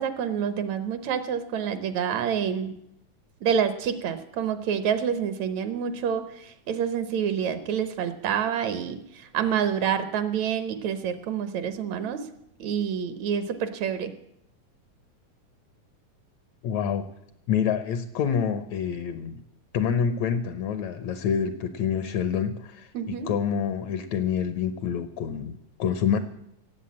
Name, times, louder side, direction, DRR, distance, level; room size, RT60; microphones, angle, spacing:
voice 1, 0.0-2.7 3.4-12.3 12.6-14.1 22.9-23.3, right 8 dB, 70° right, 10 dB, 2.1 m, -28 dB
voice 2, 16.6-17.1 17.5-19.4 19.7-26.2, left 7 dB, 75° left, 11 dB, 1.9 m, -27 dB
17.0 x 8.0 x 8.5 m, 0.76 s
omnidirectional pair, 3.5 m